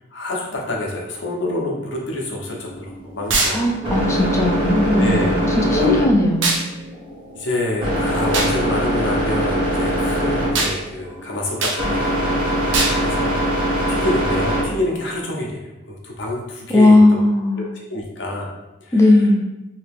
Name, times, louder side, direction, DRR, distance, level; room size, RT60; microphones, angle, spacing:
voice 1, 0.1-4.2 5.0-5.4 5.7-6.0 7.3-13.3 13.9-17.2 17.6-18.5 18.8-19.0, left 1 dB, 80° left, -1 dB, 0.8 m, -27 dB
sound 1, 2.2-15.2, equal, 30° right, 1.2 m, -23 dB
sound 2, 3.3-3.6 6.4-6.6 8.3-8.5 10.5-10.8 11.6-11.8 12.7-13.0, right 3 dB, 90° right, 0.6 m, -20 dB
voice 2, 3.5-6.6 16.7-17.7 18.9-19.4, left 2 dB, 15° left, 0 dB, 0.4 m, -16 dB
2.9 x 2.8 x 3.4 m, 0.98 s
head